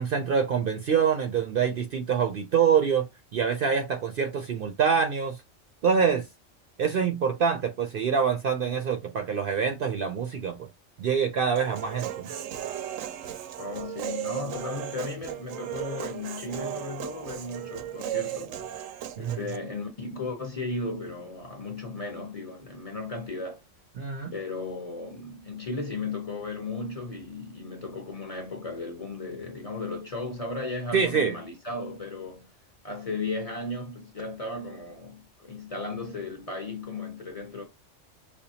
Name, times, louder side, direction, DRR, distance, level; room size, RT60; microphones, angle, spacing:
voice 1, 0.0-3.1 3.3-5.4 5.8-6.2 6.8-10.7 11.0-12.3 19.2-19.4 24.0-24.3 30.9-31.4, right 6 dB, 60° right, 0.6 m, -25 dB
Human voice, 11.6-19.6, right 11 dB, 90° right, 0.9 m, -36 dB
voice 2, 13.6-18.6 19.2-23.6 24.3-32.5 32.8-37.6, left 3 dB, 35° left, 0.7 m, -35 dB
5.1 x 2.3 x 2.7 m
omnidirectional pair, 1.3 m